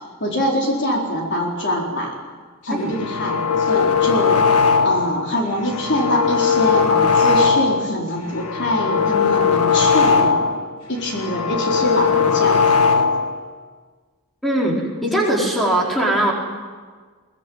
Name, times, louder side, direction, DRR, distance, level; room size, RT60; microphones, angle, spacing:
voice 1, 0.2-2.2 2.6-4.4 4.8-10.5 10.9-12.7, equal, 55° left, -1 dB, 4.2 m, -23 dB
sound 1, 2.8-5.2 5.6-7.9 8.3-10.6 11.0-13.4, left 6 dB, 85° left, 1.6 m, -18 dB
voice 2, 14.4-16.3, right 1 dB, ahead, -3 dB, 4.8 m, -20 dB
22.0 x 20.0 x 9.4 m, 1.5 s
head